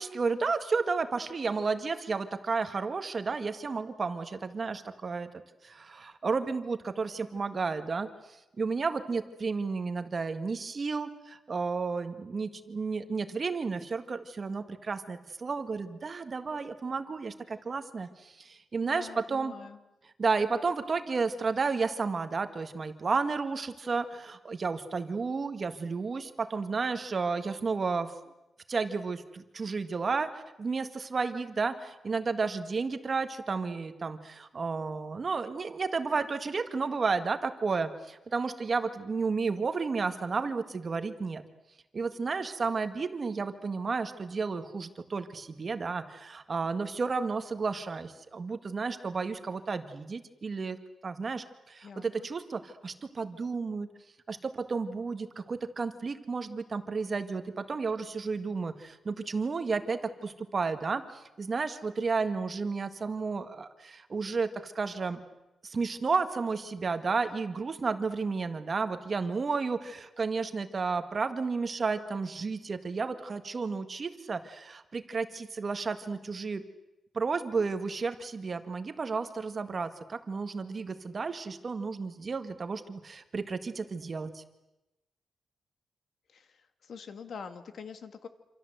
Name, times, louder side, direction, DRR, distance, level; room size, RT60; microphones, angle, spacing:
voice 1, 0.0-5.3 5.6-19.5 20.0-28.1 28.7-41.4 41.9-53.9 54.3-65.2 65.6-76.6 77.1-84.4, right 4 dB, 30° right, 9 dB, 1.7 m, -32 dB
voice 2, 18.8-19.8 51.8-52.3 86.3-86.5 86.8-88.3, left 6 dB, 55° left, 9 dB, 2.1 m, -44 dB
27.5 x 27.0 x 8.0 m, 0.96 s
wide cardioid pair, 175°, 0 cm